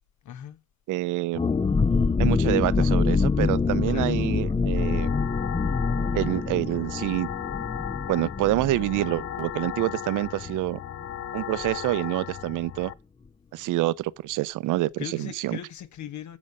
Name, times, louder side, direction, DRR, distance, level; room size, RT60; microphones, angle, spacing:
voice 1, 0.2-0.6 3.9-4.2 15.0-16.4, left 10 dB, 70° left, 1.3 m, -39 dB
voice 2, 0.9-1.5 2.2-5.1 6.1-7.3 8.1-10.8 11.3-12.9 13.5-15.6, right 17 dB, 85° right, 0.6 m, -27 dB
sound 1, 1.3-10.8 11.0-11.1 11.5-11.7, left 4 dB, 20° left, 0.5 m, -25 dB
sound 2, 4.8-12.9, left 10 dB, 50° left, 0.7 m, -36 dB
15.0 x 5.1 x 5.5 m
cardioid pair, 90°, 30 cm